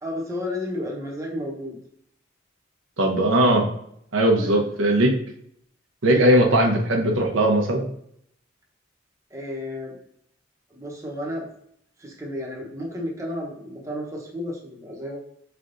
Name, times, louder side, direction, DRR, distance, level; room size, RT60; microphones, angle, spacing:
voice 1, 0.0-1.8 4.3-4.9 6.1-6.3 9.3-10.0 10.7-11.5 12.0-15.2, left 1 dB, 15° right, -2 dB, 0.8 m, -32 dB
voice 2, 3.0-3.7 4.1-5.1 6.0-7.9, right 1 dB, 90° right, 1 dB, 0.8 m, -19 dB
4.8 x 3.4 x 2.5 m, 0.70 s
head